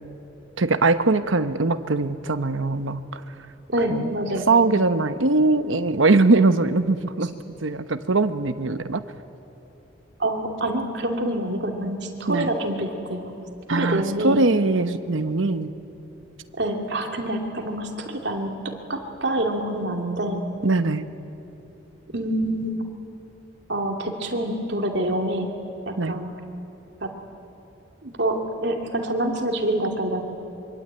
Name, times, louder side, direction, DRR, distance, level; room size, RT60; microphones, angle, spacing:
voice 1, 0.6-3.2 3.9-4.1 4.5-7.3 7.6-9.0 12.3-12.5 13.7-15.7 20.6-21.1 26.0-26.2, right 3 dB, 85° right, 10 dB, 1.0 m, -21 dB
voice 2, 3.7-4.8 10.2-13.2 13.7-14.4 16.6-18.5 18.9-20.4 22.1-22.8 23.7-25.5 25.9-26.3 27.0-27.1 28.0-30.2, right 1 dB, 60° right, 2 dB, 2.7 m, -26 dB
24.5 x 24.0 x 8.9 m, 2.9 s
head